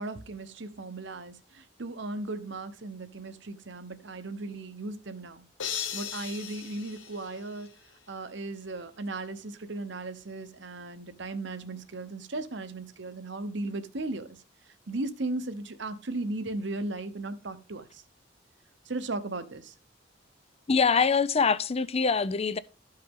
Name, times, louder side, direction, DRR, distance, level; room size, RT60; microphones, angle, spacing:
voice 1, 0.0-5.4 5.9-7.7 8.1-14.4 14.9-17.9 18.9-19.7, right 2 dB, 65° right, 1.1 m, -36 dB
sound 1, 5.6-7.9, left 8 dB, 80° left, 1.2 m, -37 dB
voice 2, 20.7-22.6, left 5 dB, 30° left, 0.5 m, -24 dB
13.0 x 5.6 x 3.7 m
head